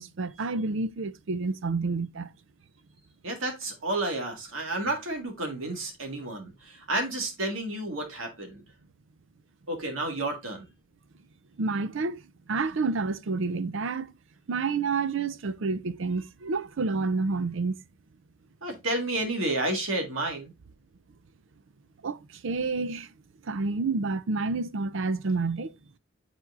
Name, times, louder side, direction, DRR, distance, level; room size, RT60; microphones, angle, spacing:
voice 1, 0.0-2.3 11.6-12.2 12.5-14.1 14.5-17.7 22.0-22.2 22.4-23.1 23.5-25.7, right 4 dB, 70° right, 0.5 m, -29 dB
voice 2, 3.2-8.6 9.7-10.6 18.6-20.5, right 2 dB, 85° right, 1.9 m, -31 dB
8.4 x 4.4 x 2.5 m
head